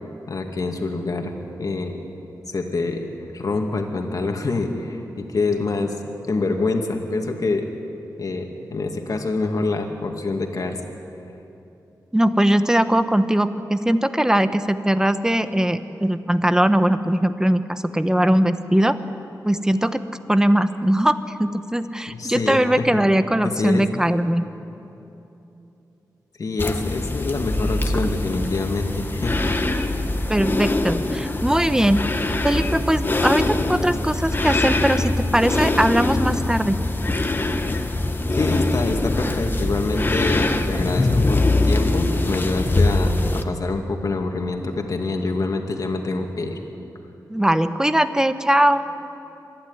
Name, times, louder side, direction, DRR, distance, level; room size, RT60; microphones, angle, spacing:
voice 1, 0.3-1.3 1.6-2.0 2.5-3.0 3.3-5.9 6.3-7.7 8.2-10.8 22.1-23.0 23.4-23.8 26.4-29.4 38.4-46.6, left 3 dB, 60° left, 3 dB, 2.3 m, -26 dB
voice 2, 12.1-19.0 19.4-20.0 20.3-24.4 30.3-32.0 32.4-36.8 47.3-48.8, right 1 dB, 10° right, 10 dB, 1.0 m, -20 dB
sound 1, 26.6-43.4, left 2 dB, 30° left, 1.3 m, -23 dB
25.0 x 11.5 x 9.8 m, 2.9 s
cardioid pair, 70°, 7 cm